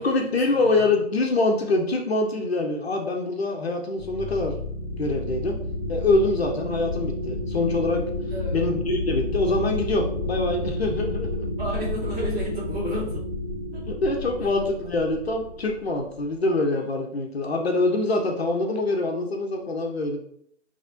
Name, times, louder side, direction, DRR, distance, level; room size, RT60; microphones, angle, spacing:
voice 1, 0.0-4.6 5.0-5.6 5.9-8.0 8.5-11.5 13.9-20.2, left 2 dB, 55° left, 2 dB, 1.1 m, -24 dB
sound 1, 4.0-16.2, left 2 dB, 15° left, 0.5 m, -30 dB
voice 2, 8.3-8.7 11.6-13.3 13.7-13.9 14.4-14.5, equal, 20° right, -9 dB, 2.0 m, -32 dB
6.0 x 3.3 x 2.7 m, 0.66 s
figure-of-eight pair, 140°, 36 cm